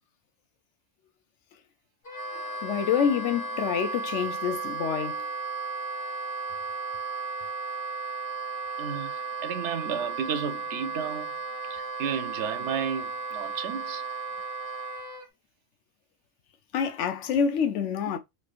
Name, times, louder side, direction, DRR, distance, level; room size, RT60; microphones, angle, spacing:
Wind instrument woodwind instrument, 2.0-15.2, right 4 dB, 55° left, 1.4 m, -34 dB
voice 1, 2.3-5.2 16.7-18.2, left 7 dB, 85° left, 0.9 m, -27 dB
voice 2, 8.8-11.3 11.7-14.0, right 7 dB, 75° right, 0.9 m, -33 dB
3.2 x 3.0 x 2.4 m
omnidirectional pair, 1.2 m